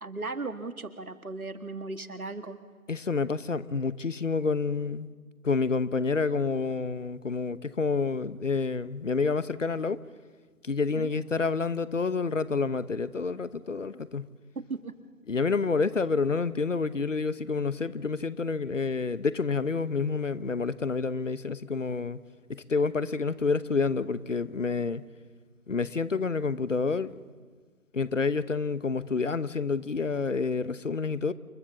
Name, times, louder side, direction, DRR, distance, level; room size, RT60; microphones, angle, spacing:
voice 1, 0.0-2.6 10.9-11.1 14.6-14.9, right 3 dB, 80° right, 1.8 m, -36 dB
voice 2, 2.9-5.1 5.4-10.0 10.6-14.3 15.3-22.2 22.5-25.0 25.7-27.1 27.9-31.3, left 4 dB, 60° left, 0.9 m, -28 dB
28.5 x 13.5 x 7.3 m
figure-of-eight pair, 165°, 43 cm